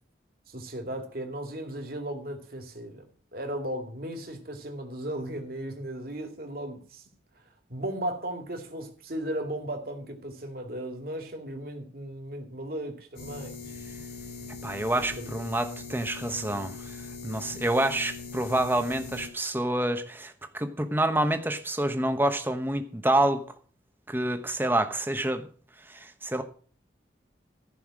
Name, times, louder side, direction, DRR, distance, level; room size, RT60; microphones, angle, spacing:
voice 1, 0.5-3.0 3.3-7.1 7.4-7.5 7.7-13.6 15.2-15.3, right 1 dB, 50° right, 2.4 m, -36 dB
sound 1, 13.2-19.3, left 4 dB, 50° left, 4.4 m, -41 dB
voice 2, 14.6-17.0 17.2-23.4 24.1-25.5 25.9-26.4, right 1 dB, 10° right, 1.0 m, -27 dB
14.5 x 5.7 x 7.5 m
head